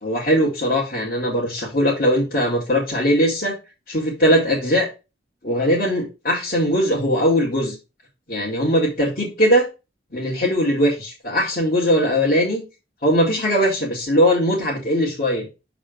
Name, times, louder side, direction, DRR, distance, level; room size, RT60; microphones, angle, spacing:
voice 1, 0.0-3.6 3.9-4.9 5.4-7.7 8.3-9.7 10.1-12.6 13.0-15.5, equal, 50° left, -6 dB, 2.2 m, -20 dB
6.8 x 4.1 x 5.2 m, 0.28 s
head